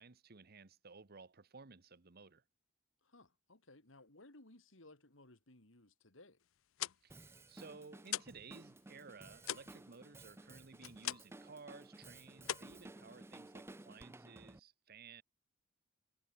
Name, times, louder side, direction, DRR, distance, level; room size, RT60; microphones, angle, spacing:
voice 1, 0.0-2.4 7.0-15.2, right 4 dB, 50° right, 1.1 m, -56 dB
voice 2, 3.0-6.4 13.0-13.2, left 2 dB, 70° left, 3.2 m, -61 dB
sound 1, 6.6-8.5 8.8-11.5 11.8-12.1 12.4-13.5, left 12 dB, 85° left, 0.6 m, -43 dB
Drum kit, 7.1-14.6, right 2 dB, 10° right, 0.5 m, -56 dB
head